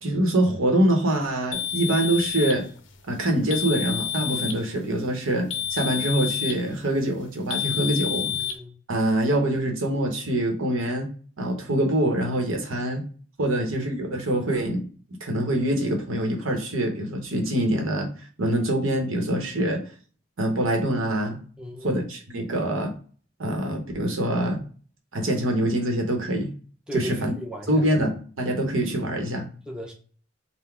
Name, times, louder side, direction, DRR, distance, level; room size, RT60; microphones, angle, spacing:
voice 1, 0.0-2.6 3.1-8.3 8.9-11.1 11.4-13.0 13.4-14.8 15.2-18.1 18.4-19.8 20.4-21.4 21.8-22.9 23.4-24.6 25.1-26.5 26.9-27.4 27.7-29.5, right 1 dB, 85° right, 3 dB, 0.9 m, -24 dB
sound 1, 1.5-2.6 3.5-4.6 5.5-6.6 7.5-8.6, left 9 dB, 65° left, 0.5 m, -29 dB
voice 2, 8.2-8.7 13.5-13.7 21.6-22.0 26.9-27.8 29.7-29.9, equal, 5° right, -1 dB, 0.7 m, -36 dB
3.9 x 2.1 x 4.3 m, 0.42 s
head